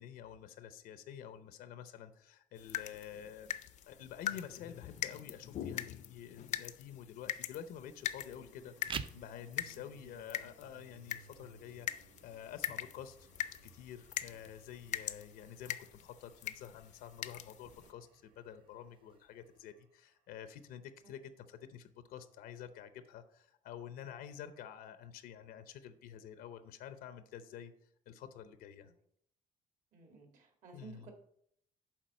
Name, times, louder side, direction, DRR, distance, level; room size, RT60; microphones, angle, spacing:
voice 1, 0.0-3.5 3.9-13.3 13.6-27.7 28.1-28.9 30.7-31.1, left 9 dB, 90° left, 11 dB, 0.7 m, -49 dB
sound 1, 2.6-17.9, left 10 dB, 55° left, 0.5 m, -43 dB
sound 2, 3.6-6.1 7.7-20.0, right 6 dB, 85° right, 1.4 m, -64 dB
sound 3, 8.7-19.7, right 6 dB, 35° right, 0.5 m, -52 dB
voice 2, 29.9-31.1, right 5 dB, 60° right, 4 dB, 1.9 m, -54 dB
7.4 x 4.8 x 6.3 m, 0.69 s
cardioid pair, 145°, 15 cm